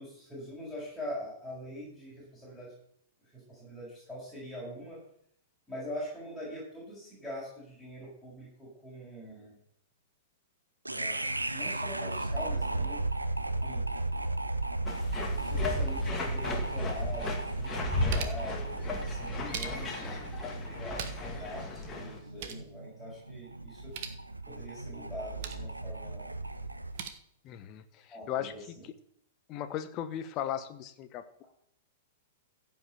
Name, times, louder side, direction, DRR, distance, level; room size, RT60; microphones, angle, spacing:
voice 1, 0.0-2.8 3.2-5.0 5.7-9.6 10.8-13.0 13.6-13.9 15.4-20.3 20.6-23.9 24.5-26.3 28.1-28.8, equal, 5° left, -9 dB, 6.5 m, -43 dB
sound 1, 10.8-27.1, right 2 dB, 85° right, 0.9 m, -35 dB
sound 2, 14.9-22.2, left 3 dB, 20° left, 2.3 m, -35 dB
sound 3, 17.6-18.5 19.2-20.1 20.7-21.4 21.7-21.8 22.1-22.7 23.7-24.2 25.1-25.7 26.7-27.1, right 8 dB, 45° right, 1.4 m, -42 dB
voice 2, 27.4-28.5 29.5-31.2, left 10 dB, 35° left, 10 dB, 1.2 m, -36 dB
15.5 x 5.8 x 7.2 m, 0.66 s
figure-of-eight pair, 100°, 0 cm